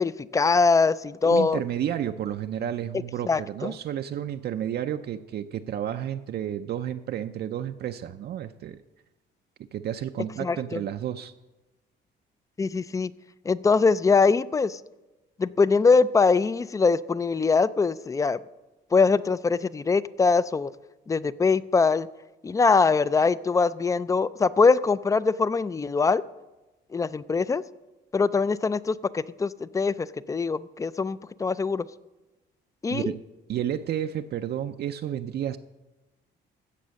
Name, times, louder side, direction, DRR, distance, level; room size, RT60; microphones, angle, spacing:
voice 1, 0.0-1.6 3.3-3.7 10.4-10.8 12.6-13.1 13.5-14.8 15.4-18.4 18.9-20.7 21.1-22.1 22.4-26.2 26.9-27.6 28.1-31.8 32.8-33.1, left 4 dB, 15° left, 18 dB, 0.3 m, -22 dB
voice 2, 1.2-8.8 9.7-11.3 32.9-33.2 33.5-35.6, right 10 dB, 55° right, 7 dB, 0.5 m, -31 dB
15.0 x 6.7 x 6.4 m, 1.1 s
cardioid pair, 125°, 19 cm